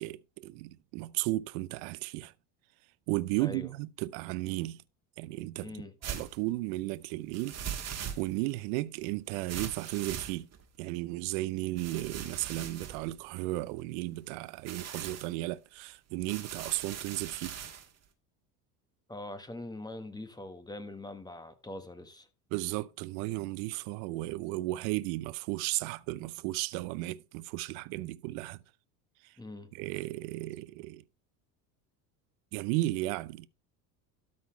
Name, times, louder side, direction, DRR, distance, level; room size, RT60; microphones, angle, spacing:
voice 1, 0.0-2.3 3.1-4.8 5.2-5.7 6.0-10.5 10.8-17.6 22.5-28.6 29.2-29.3 29.7-31.0 32.5-33.5, right 19 dB, 65° right, 0.7 m, -34 dB
voice 2, 5.6-5.9 19.1-22.3 29.4-29.7, left 1 dB, 10° left, 1.4 m, -43 dB
sound 1, 6.0-6.4 7.3-8.5 9.5-10.8 11.8-13.8 14.5-15.3 16.3-17.9, right 8 dB, 35° right, 1.7 m, -40 dB
13.0 x 4.3 x 4.5 m
supercardioid pair, 95°, 46 cm